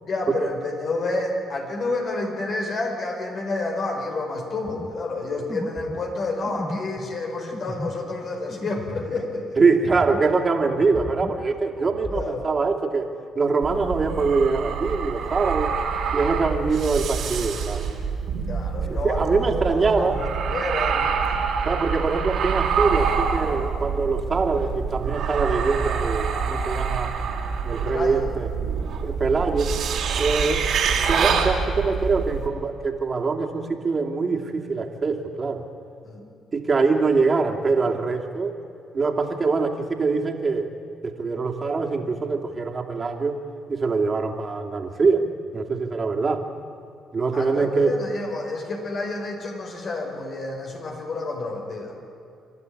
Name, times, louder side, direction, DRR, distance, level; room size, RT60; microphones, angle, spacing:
voice 1, 0.0-9.4 12.1-12.4 18.5-21.2 27.9-28.3 36.0-36.2 47.3-51.9, left 2 dB, 55° left, 2 dB, 5.1 m, -29 dB
sound 1, 4.7-10.4 10.7-12.3, left 1 dB, 20° left, 3.8 m, -36 dB
voice 2, 9.6-15.8 16.1-17.9 18.9-20.2 21.6-27.1 27.6-28.5 29.0-29.8 30.2-30.7 31.1-35.6 36.5-38.5 38.9-40.7 41.0-43.4 43.7-45.3 45.5-46.4 47.1-48.0, right 4 dB, 40° right, 2 dB, 2.7 m, -23 dB
sound 2, 13.6-32.5, right 6 dB, 65° right, 2.8 m, -26 dB
27.0 x 12.5 x 9.7 m, 2.6 s
supercardioid pair, 55°, 0 cm